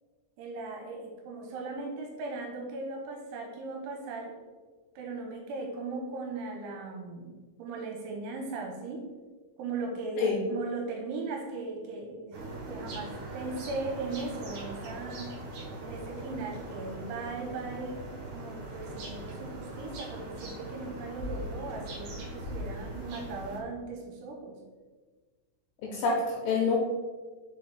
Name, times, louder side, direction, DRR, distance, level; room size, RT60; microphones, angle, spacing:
voice 1, 0.4-4.3 5.0-7.3 7.6-9.1 9.6-15.4 15.8-18.0 18.3-24.6, right 3 dB, 80° right, 1 dB, 3.0 m, -38 dB
sound 1, 12.3-23.6, right 1 dB, 65° right, 2.2 m, -40 dB
voice 2, 25.8-26.8, left 4 dB, 80° left, -2 dB, 2.6 m, -27 dB
6.6 x 4.6 x 3.9 m, 1.4 s
omnidirectional pair, 5.8 m